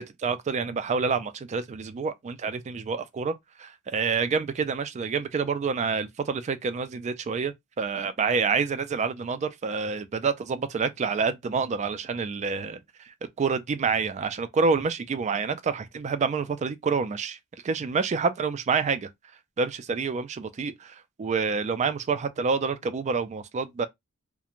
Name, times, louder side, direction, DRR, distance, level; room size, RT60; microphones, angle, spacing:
voice 1, 0.0-3.3 3.6-12.8 13.1-17.4 17.6-19.1 19.6-23.9, right 5 dB, 30° right, 0.3 m, -28 dB
2.4 x 2.1 x 2.9 m
head